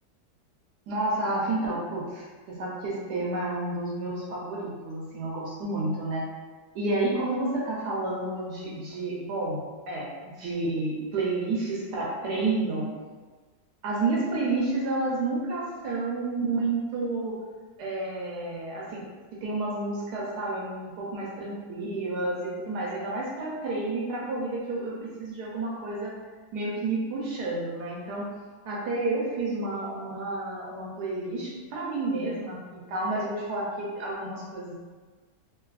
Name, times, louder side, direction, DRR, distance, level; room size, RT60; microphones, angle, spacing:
voice 1, 0.9-6.3 6.7-9.6 9.9-12.9 13.8-17.4 17.8-19.0 19.4-26.1 26.5-28.3 28.7-34.7, right 2 dB, 70° right, -5 dB, 1.1 m, -30 dB
3.3 x 2.3 x 2.3 m, 1.4 s
omnidirectional pair, 2.0 m